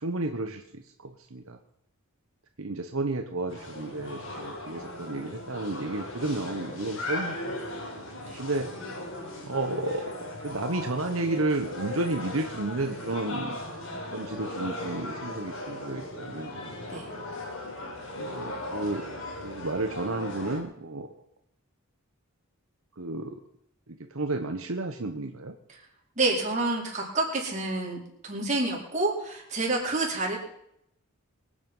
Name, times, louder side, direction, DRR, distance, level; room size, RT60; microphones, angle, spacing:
voice 1, 0.0-1.6 2.6-7.7 8.4-8.7 9.5-10.0 10.4-13.6 14.1-16.6 18.2-19.1 19.4-21.1 23.0-23.4 24.1-25.5, right 2 dB, 75° right, 5 dB, 1.1 m, -32 dB
sound 1, 3.5-20.6, left 1 dB, 65° left, 4.3 m, -37 dB
voice 2, 26.2-30.4, right 2 dB, 35° right, -3 dB, 4.4 m, -28 dB
23.5 x 8.7 x 5.5 m, 0.78 s
head